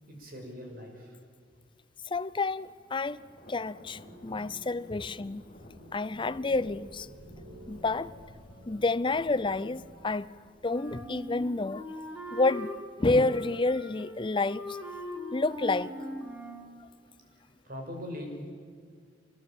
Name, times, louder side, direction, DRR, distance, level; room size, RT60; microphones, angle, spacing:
voice 1, 0.0-1.2 17.6-18.3, left 1 dB, 50° right, 6.3 m, -41 dB
voice 2, 2.1-3.2 3.5-5.4 5.9-7.1 7.7-8.1 8.7-10.3 10.6-11.8 12.3-12.7 13.0-14.8 15.3-15.9, left 3 dB, 25° left, 0.6 m, -29 dB
Thunder, 2.4-12.2, left 1 dB, 40° left, 5.3 m, -55 dB
sound 1, 4.0-10.6 10.8-10.9 12.6-13.3 14.4-15.1, right 1 dB, 85° right, 5.7 m, -53 dB
Wind instrument woodwind instrument, 10.7-12.8 13.2-14.2 14.5-16.7, left 1 dB, 10° right, 4.6 m, -40 dB
25.0 x 19.5 x 9.0 m
head